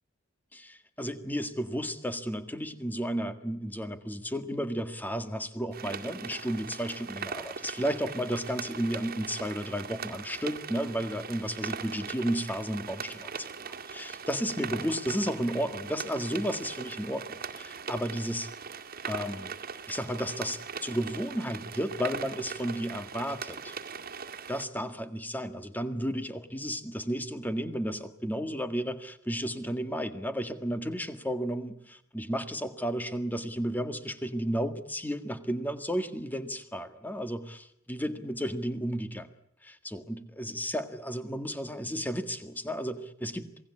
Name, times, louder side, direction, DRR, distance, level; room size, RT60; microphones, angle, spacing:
voice 1, 0.5-18.5 19.0-19.5 19.9-23.7 24.5-39.3 39.6-43.5, equal, 10° left, 9 dB, 1.8 m, -33 dB
sound 1, 5.7-24.6, right 6 dB, 50° right, 2.1 m, -40 dB
27.5 x 19.0 x 8.6 m, 0.72 s
head